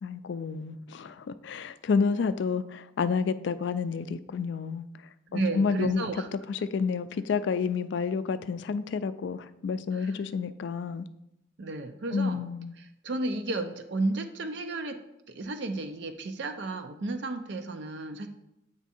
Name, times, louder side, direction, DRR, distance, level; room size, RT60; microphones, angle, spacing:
voice 1, 0.0-4.9 5.3-11.1 12.1-12.7, left 5 dB, 60° left, 14 dB, 0.3 m, -30 dB
voice 2, 5.3-6.3 9.9-10.2 11.6-12.4 12.8-15.0 15.3-18.3, right 2 dB, 60° right, 7 dB, 0.5 m, -32 dB
8.2 x 3.5 x 4.2 m, 0.85 s
head